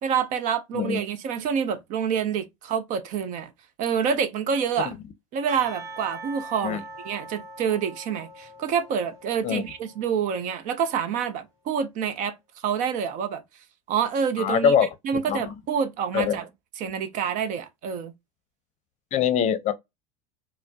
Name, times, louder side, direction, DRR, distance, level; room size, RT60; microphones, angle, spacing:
voice 1, 0.0-3.5 3.8-4.9 5.3-12.4 12.6-13.4 13.9-14.7 15.0-16.5 16.8-18.1, right 7 dB, 50° right, 0.7 m, -27 dB
Percussion / Church bell, 5.5-10.5, right 2 dB, 20° right, 2.0 m, -42 dB
voice 2, 14.4-14.9 15.3-15.4 16.1-16.4 19.1-19.7, left 8 dB, 40° left, 0.6 m, -23 dB
4.0 x 2.1 x 2.7 m
hypercardioid pair, 85°, 18 cm